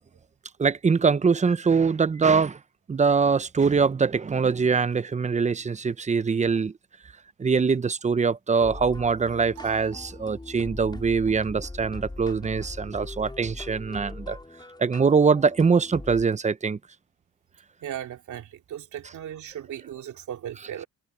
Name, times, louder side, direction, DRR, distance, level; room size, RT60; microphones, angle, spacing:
voice 1, 0.6-2.6 2.9-6.7 7.4-14.4 14.8-16.8, right 5 dB, 25° right, 0.8 m, -23 dB
sound 1, 8.6-16.2, left 2 dB, 15° left, 4.2 m, -40 dB
sound 2, 9.5-11.0, right 12 dB, 90° right, 5.9 m, -51 dB
voice 2, 17.8-20.9, right 10 dB, 75° right, 3.4 m, -37 dB
cardioid pair, 90°, 30 cm